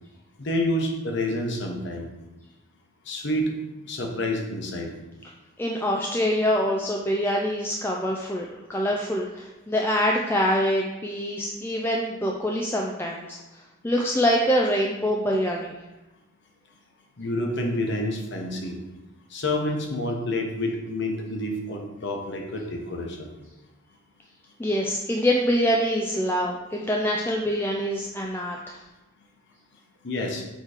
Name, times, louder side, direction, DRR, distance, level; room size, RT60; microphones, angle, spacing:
voice 1, 0.4-2.1 3.0-3.5 3.9-4.9 17.2-18.8 19.3-23.3 30.0-30.4, left 1 dB, 60° left, 1 dB, 1.0 m, -28 dB
voice 2, 5.6-15.8 24.6-28.8, equal, 10° left, -1 dB, 0.4 m, -25 dB
6.4 x 3.1 x 4.9 m, 1.0 s
head